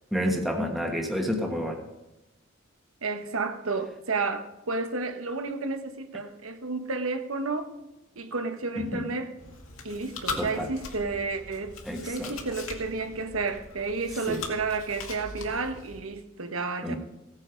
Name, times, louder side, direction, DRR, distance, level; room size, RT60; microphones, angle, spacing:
voice 1, 0.1-1.8 8.8-9.1 10.4-10.7 11.8-12.4 14.3-14.4 16.8-17.0, equal, ahead, 1.2 m, -29 dB
voice 2, 3.0-7.7 8.2-9.3 9.8-11.7 12.0-17.0, right 3 dB, 85° right, 1.1 m, -31 dB
Chewing mastication, 9.4-16.0, left 4 dB, 80° left, 2.1 m, -40 dB
16.5 x 8.9 x 5.1 m
head